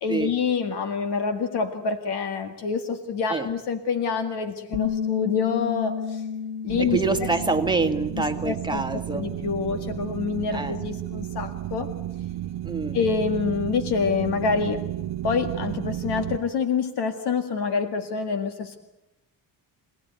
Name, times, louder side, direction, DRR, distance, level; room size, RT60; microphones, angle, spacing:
voice 1, 0.0-6.2 6.6-7.0 8.2-8.8 9.1-11.9 12.9-14.8 15.2-18.8, left 5 dB, 65° left, 7 dB, 2.1 m, -27 dB
Bass guitar, 4.7-9.1 9.4-11.0, left 7 dB, 30° left, 2.6 m, -33 dB
sound 1, 6.7-16.4, right 13 dB, 80° right, 1.2 m, -33 dB
voice 2, 6.8-9.3 10.5-10.7 12.6-13.0, right 3 dB, 10° right, 6 dB, 1.8 m, -26 dB
27.0 x 18.5 x 9.5 m, 0.91 s
cardioid pair, 140°, 42 cm